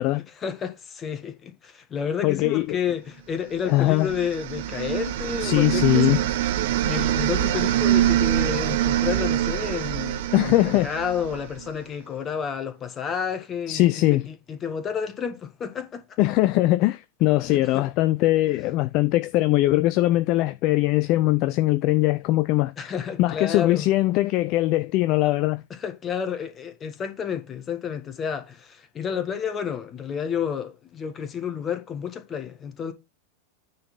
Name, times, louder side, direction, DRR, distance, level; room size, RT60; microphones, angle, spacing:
voice 1, 0.4-6.2 6.7-16.0 17.5-17.9 22.8-23.9 25.7-32.9, left 7 dB, 25° left, 1.6 m, -30 dB
voice 2, 2.2-2.8 3.7-4.1 5.4-6.2 10.3-10.9 13.7-14.3 16.2-25.6, left 17 dB, 40° left, 0.5 m, -21 dB
sound 1, 3.7-11.7, right 12 dB, 50° right, 0.7 m, -25 dB
9.4 x 4.1 x 5.9 m
figure-of-eight pair, 90°, 0 cm